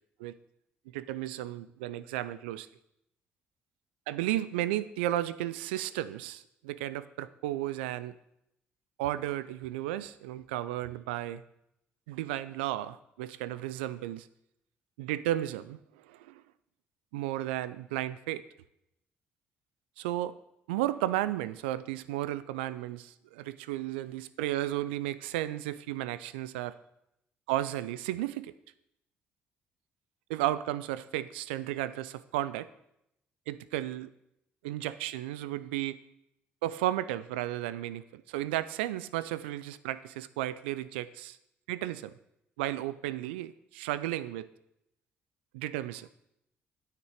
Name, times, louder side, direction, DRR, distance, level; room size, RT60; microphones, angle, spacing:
voice 1, 0.9-2.7 4.1-8.2 9.0-11.4 12.1-14.3 15.0-16.4 17.1-18.4 20.0-20.3 20.7-26.8 27.5-28.5 30.3-32.7 33.5-34.1 34.6-36.0 36.6-41.4 41.7-42.1 42.6-44.5 45.5-46.1, right 14 dB, 85° right, 15 dB, 0.3 m, -34 dB
9.2 x 6.6 x 4.9 m, 0.81 s
hypercardioid pair, 50°, 6 cm